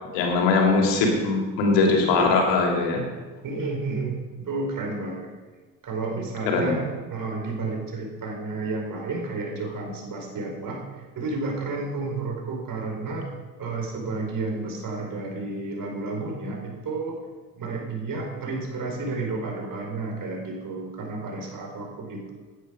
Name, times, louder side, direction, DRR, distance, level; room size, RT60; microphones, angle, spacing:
voice 1, 0.1-3.0 6.5-6.7, left 3 dB, 60° left, 1 dB, 3.2 m, -21 dB
voice 2, 3.4-5.3 5.8-13.3 13.6-17.2 17.5-22.3, right 3 dB, 40° right, 1 dB, 4.8 m, -31 dB
17.0 x 9.9 x 5.3 m, 1.3 s
figure-of-eight pair, 55°, 49 cm